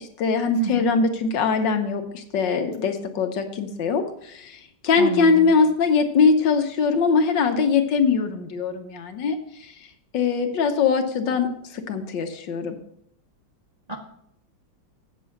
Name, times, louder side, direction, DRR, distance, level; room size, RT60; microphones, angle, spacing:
voice 1, 0.0-9.4 10.1-12.8, left 5 dB, 70° left, 6 dB, 1.5 m, -22 dB
voice 2, 0.6-0.9 5.0-5.5 13.9-14.0, right 3 dB, 30° right, -2 dB, 0.9 m, -30 dB
8.4 x 6.8 x 6.4 m, 0.72 s
omnidirectional pair, 2.1 m